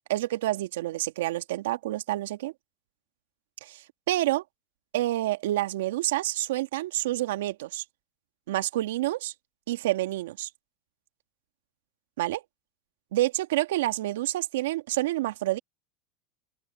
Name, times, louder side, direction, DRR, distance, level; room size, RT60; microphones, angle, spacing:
voice 1, 0.1-2.5 3.6-4.4 4.9-7.8 8.5-9.3 9.7-10.5 12.2-12.4 13.1-15.6, right 16 dB, 80° right, 1.8 m, -28 dB
open air
hypercardioid pair, 95°, 0 cm